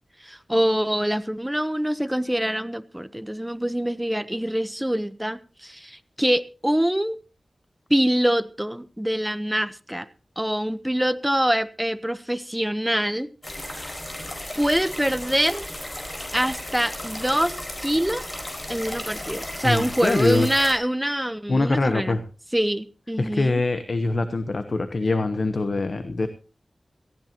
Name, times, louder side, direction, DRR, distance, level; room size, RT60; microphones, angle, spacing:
voice 1, 0.2-7.2 7.9-10.1 10.4-13.3 14.5-15.6 16.3-18.3 18.7-22.2 22.5-23.6, equal, 5° right, 13 dB, 0.9 m, -24 dB
sound 1, 13.4-20.7, left 1 dB, 30° left, 4.4 m, -35 dB
voice 2, 19.6-20.5 21.5-22.2 23.2-26.3, left 3 dB, 60° left, 10 dB, 1.0 m, -23 dB
18.0 x 15.5 x 3.0 m, 0.34 s
wide cardioid pair, 75°, 0 cm